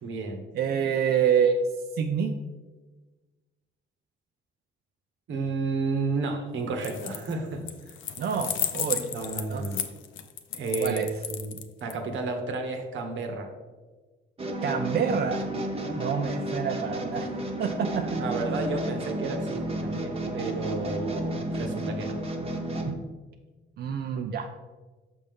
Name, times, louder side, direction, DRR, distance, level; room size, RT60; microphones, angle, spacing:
voice 1, 0.0-0.4 5.3-7.6 8.9-9.8 10.5-13.5 15.8-16.3 18.2-22.2, right 3 dB, 70° right, 4 dB, 1.1 m, -32 dB
voice 2, 0.5-1.6 2.0-2.3 8.2-9.1 9.5-9.7 10.8-11.1 14.6-15.4 15.9-17.3 17.6-18.1 22.9-23.0 23.8-24.6, right 7 dB, 55° right, 4 dB, 0.5 m, -27 dB
sound 1, 6.8-7.3 7.7-11.9, left 10 dB, 75° left, 0.6 m, -33 dB
sound 2, 14.4-22.9, right 1 dB, 30° right, 1.0 m, -32 dB
6.6 x 5.4 x 3.5 m, 1.3 s
cardioid pair, 90°, 20 cm